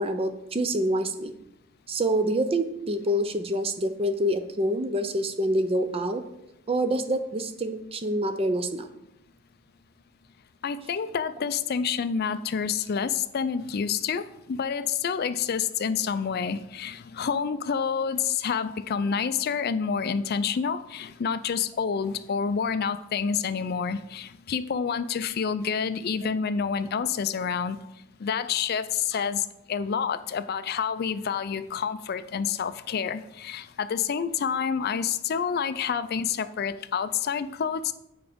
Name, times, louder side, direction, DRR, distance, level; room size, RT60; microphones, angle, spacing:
voice 1, 0.0-1.3 1.9-6.2 6.7-8.9, right 1 dB, 25° right, 9 dB, 0.5 m, -26 dB
voice 2, 10.6-27.8 28.2-37.9, left 6 dB, 45° left, 13 dB, 0.4 m, -28 dB
7.1 x 4.8 x 5.1 m, 0.86 s
head